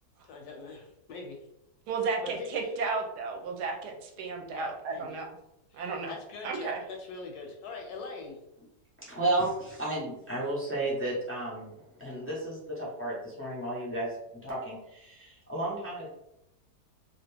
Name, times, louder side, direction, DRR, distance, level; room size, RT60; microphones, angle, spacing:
voice 1, 0.2-1.4 2.2-2.7 4.5-5.2 5.7-8.4, left 3 dB, 70° left, 2 dB, 1.0 m, -43 dB
voice 2, 1.9-5.4 5.7-6.1 6.4-6.8, right 4 dB, 75° right, 2 dB, 1.1 m, -33 dB
voice 3, 9.0-11.7 12.0-14.1 14.4-16.1, right 2 dB, 15° left, -6 dB, 0.5 m, -32 dB
2.8 x 2.5 x 3.3 m, 0.82 s
omnidirectional pair, 1.9 m